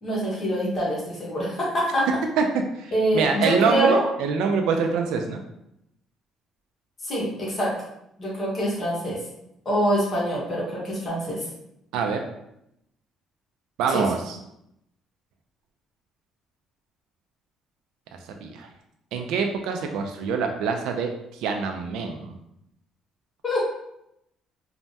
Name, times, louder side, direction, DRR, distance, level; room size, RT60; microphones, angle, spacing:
voice 1, 0.0-2.1 2.9-4.1 7.0-7.8 8.2-9.2 9.6-11.4 13.9-14.0 23.4-23.7, equal, 40° left, -5 dB, 1.0 m, -25 dB
voice 2, 2.7-5.4 11.9-12.2 13.8-14.4 18.2-18.7 19.1-22.4, right 5 dB, 80° right, 4 dB, 0.3 m, -25 dB
3.3 x 2.1 x 2.7 m, 0.80 s
cardioid pair, 105°, 0 cm